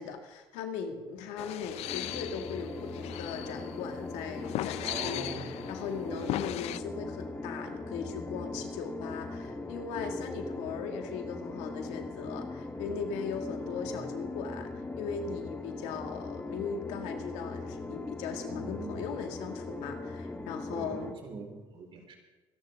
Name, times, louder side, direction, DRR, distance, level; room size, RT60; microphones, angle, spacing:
voice 1, 0.0-21.1, left 6 dB, 85° left, 4 dB, 2.0 m, -39 dB
sound 1, 1.4-6.8, left 15 dB, 70° left, 0.5 m, -38 dB
sound 2, 1.9-21.1, left 2 dB, 20° left, 1.6 m, -40 dB
voice 2, 4.8-5.6 6.1-6.5 13.6-14.0 18.5-19.0 20.7-22.2, right 4 dB, 55° right, 1 dB, 4.3 m, -43 dB
25.0 x 11.0 x 3.6 m, 1.2 s
supercardioid pair, 90°, 11 cm